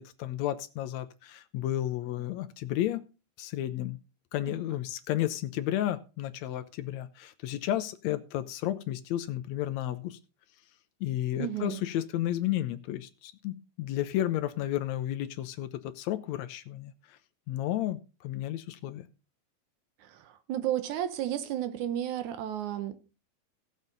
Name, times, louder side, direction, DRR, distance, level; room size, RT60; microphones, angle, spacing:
voice 1, 0.0-3.0 3.4-4.0 4.3-10.2 11.0-17.2 17.5-19.1, left 13 dB, 80° left, 1.6 m, -32 dB
voice 2, 11.4-11.8 20.1-20.2 20.5-23.0, right 11 dB, 70° right, 2.2 m, -32 dB
16.0 x 7.4 x 3.9 m
omnidirectional pair, 3.9 m